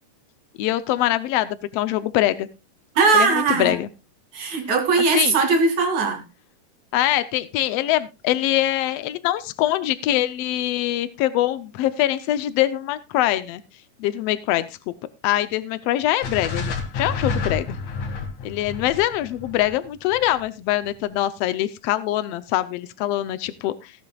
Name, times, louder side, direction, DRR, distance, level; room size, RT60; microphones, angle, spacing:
voice 1, 0.6-2.5 3.1-3.9 4.5-4.6 5.1-5.4 6.9-13.6 14.0-14.7 15.2-17.8 18.4-23.9, left 14 dB, 80° left, 13 dB, 1.4 m, -23 dB
voice 2, 3.0-3.7 4.3-6.2, right 4 dB, 65° right, 4 dB, 3.7 m, -19 dB
sound 1, 16.2-20.4, left 4 dB, 65° left, 3.3 m, -29 dB
17.0 x 11.0 x 2.3 m, 0.25 s
omnidirectional pair, 3.7 m